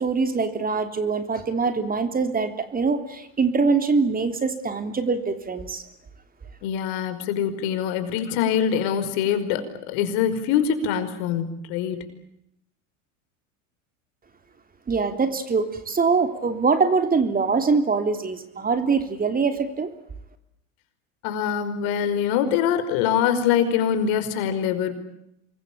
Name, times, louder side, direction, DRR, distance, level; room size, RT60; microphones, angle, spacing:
voice 1, 0.0-5.8 14.9-19.9, right 4 dB, 20° right, 9 dB, 3.3 m, -23 dB
voice 2, 6.6-12.0 21.2-24.9, left 8 dB, 65° left, 10 dB, 5.2 m, -24 dB
27.0 x 22.5 x 8.7 m, 0.79 s
hypercardioid pair, 105°, 41 cm